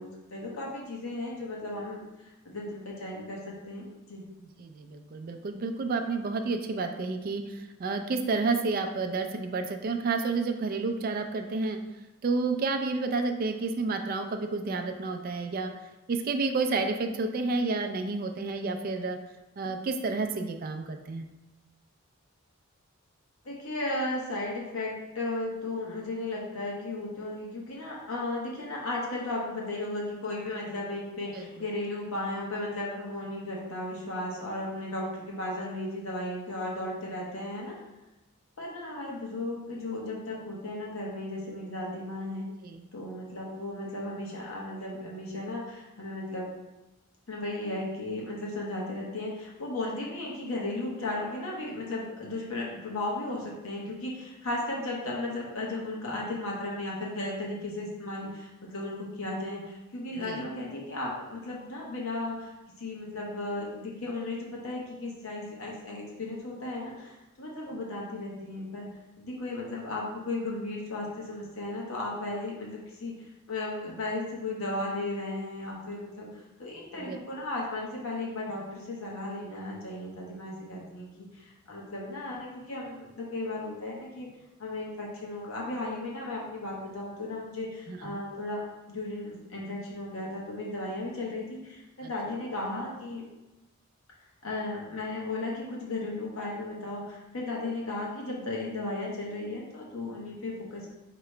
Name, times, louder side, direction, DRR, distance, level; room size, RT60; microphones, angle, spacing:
voice 1, 0.0-4.2 23.4-37.8 38.6-42.4 42.9-46.5 47.3-62.5 62.8-68.9 69.2-73.1 73.5-84.3 84.6-88.6 88.9-93.3 94.4-100.9, left 2 dB, 75° left, -3 dB, 1.1 m, -35 dB
voice 2, 4.6-11.8 12.2-15.7 16.1-19.2 19.6-21.2 31.3-31.5 42.6-42.9 60.2-60.5 76.9-77.2 87.9-88.2, right 3 dB, 45° right, 6 dB, 0.3 m, -30 dB
4.7 x 2.9 x 3.2 m, 1.0 s
head